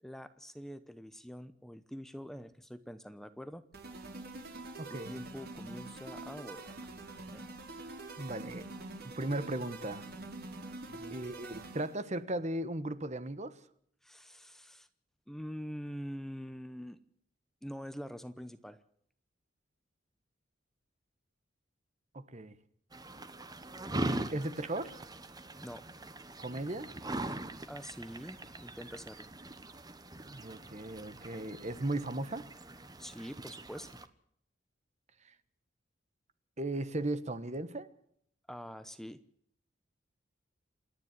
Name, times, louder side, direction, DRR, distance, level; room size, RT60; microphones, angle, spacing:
voice 1, 0.0-3.6 4.9-7.5 10.9-11.2 14.0-14.9 15.3-17.0 17.6-18.8 25.6-25.9 27.7-29.3 33.0-34.0 38.5-39.2, equal, ahead, 0.8 m, -45 dB
sound 1, 3.7-12.1, right 2 dB, 55° right, 4.8 m, -46 dB
voice 2, 4.8-5.1 8.2-8.7 9.1-10.1 11.1-13.6 22.1-22.6 23.9-25.0 26.4-26.9 30.3-32.5 35.2-35.3 36.6-37.9, right 1 dB, 35° right, 1.3 m, -37 dB
sound 2, 22.9-34.1, right 1 dB, 20° right, 1.2 m, -42 dB
28.0 x 10.5 x 9.7 m
head